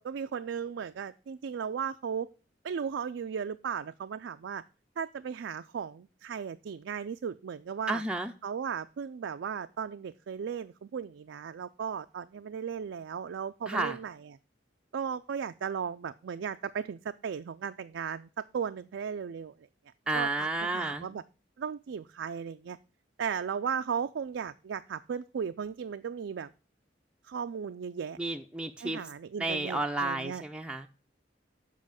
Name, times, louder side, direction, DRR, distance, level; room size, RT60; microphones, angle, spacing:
voice 1, 0.0-2.3 2.6-4.6 5.0-8.0 8.4-14.4 14.9-19.5 20.1-21.2 21.6-22.8 23.2-26.5 27.3-28.2 28.8-30.4, right 7 dB, 80° right, 10 dB, 0.4 m, -36 dB
voice 2, 7.9-8.3 13.7-14.0 20.1-21.1 28.2-29.0 29.4-30.9, right 2 dB, 5° right, 4 dB, 0.4 m, -31 dB
7.5 x 5.6 x 7.2 m, 0.36 s
head